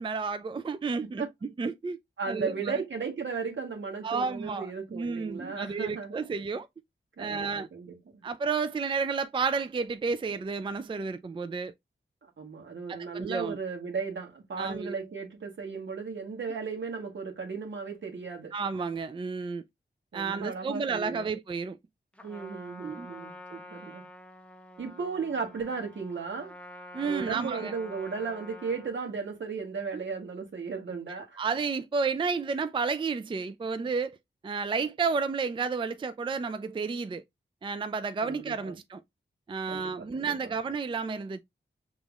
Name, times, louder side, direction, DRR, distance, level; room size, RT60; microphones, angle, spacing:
voice 1, 0.0-2.0 2.3-2.8 4.0-6.7 7.2-7.7 8.2-11.7 12.9-13.6 14.6-15.0 18.5-19.6 20.1-21.8 22.8-23.1 26.9-27.7 31.4-34.2 34.4-37.2 37.6-39.0 39.5-41.4, right 5 dB, 25° right, 0.4 m, -31 dB
voice 2, 2.2-6.2 7.2-8.2 12.4-18.5 20.1-21.3 22.2-24.0 24.8-26.5 27.0-31.4 38.2-38.8 39.7-40.5, right 5 dB, 70° right, 1.4 m, -36 dB
Trumpet, 22.1-29.0, left 1 dB, 5° left, 0.9 m, -47 dB
5.3 x 3.0 x 2.4 m
cardioid pair, 70°, 19 cm